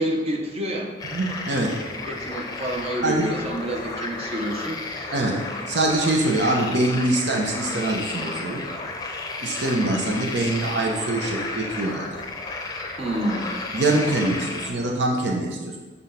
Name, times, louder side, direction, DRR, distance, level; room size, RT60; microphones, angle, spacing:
voice 1, 0.0-0.9 2.1-4.8 13.0-13.5, equal, 35° right, 1 dB, 0.9 m, -28 dB
sound 1, 1.0-14.7, left 3 dB, 20° left, 0.6 m, -33 dB
voice 2, 1.1-1.7 3.0-3.3 5.1-5.4 5.7-8.6 9.4-12.2 13.7-15.8, right 2 dB, 90° right, 0 dB, 0.9 m, -24 dB
5.9 x 3.9 x 5.6 m, 1.3 s
head